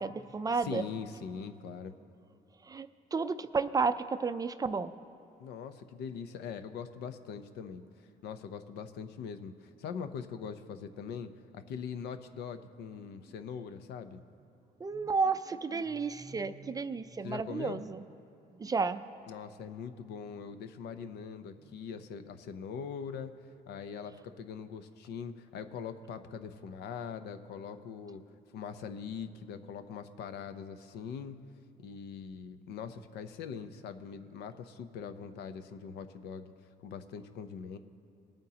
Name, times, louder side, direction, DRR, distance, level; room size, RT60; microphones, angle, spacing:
voice 1, 0.0-0.8 2.7-4.9 14.8-18.0 18.6-19.0, right 4 dB, 20° right, 11 dB, 0.4 m, -32 dB
voice 2, 0.5-1.9 5.4-7.8 8.2-14.2 17.2-17.8 19.3-23.3 23.7-28.2 28.5-31.4 31.8-36.5 36.8-37.8, left 6 dB, 80° left, 9 dB, 0.7 m, -42 dB
20.5 x 8.8 x 2.9 m, 2.9 s
cardioid pair, 110°, 17 cm